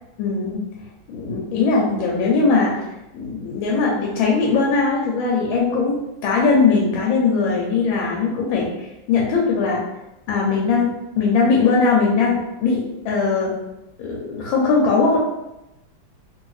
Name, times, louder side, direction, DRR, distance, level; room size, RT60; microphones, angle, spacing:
voice 1, 0.2-0.6 1.1-2.8 3.1-9.8 10.3-13.6 14.0-15.2, left 4 dB, 90° left, -3 dB, 1.4 m, -20 dB
2.8 x 2.7 x 3.0 m, 0.92 s
omnidirectional pair, 2.1 m